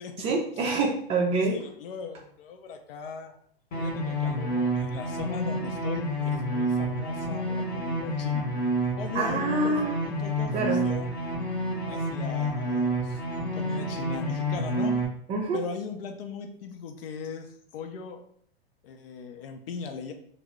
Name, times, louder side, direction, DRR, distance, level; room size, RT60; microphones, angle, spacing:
voice 1, 0.2-1.6 9.1-9.9 10.5-10.8 15.3-15.6, right 3 dB, 20° right, 0 dB, 0.4 m, -26 dB
voice 2, 1.5-3.4 3.8-8.5 9.0-11.2 11.9-13.2 13.5-14.9 15.5-18.2 18.8-20.1, left 5 dB, 65° left, 6 dB, 0.6 m, -38 dB
sound 1, 3.7-15.0, right 1 dB, 35° left, 0.8 m, -29 dB
2.8 x 2.0 x 3.4 m, 0.62 s
hypercardioid pair, 110°, 31 cm